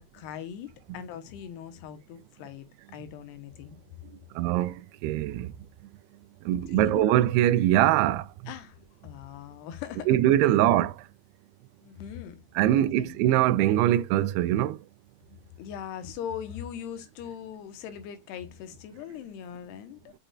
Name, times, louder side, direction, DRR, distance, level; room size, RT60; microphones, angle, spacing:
voice 1, 0.0-2.7 2.9-3.8 6.5-7.1 8.5-8.8 9.0-10.7 11.8-12.4 12.7-13.2 15.6-20.1, left 9 dB, 90° left, 3.1 m, -40 dB
voice 2, 4.4-4.7 5.0-5.5 6.5-8.2 10.1-10.9 12.6-14.8, right 13 dB, 85° right, 2.6 m, -22 dB
6.8 x 5.9 x 2.4 m
omnidirectional pair, 4.6 m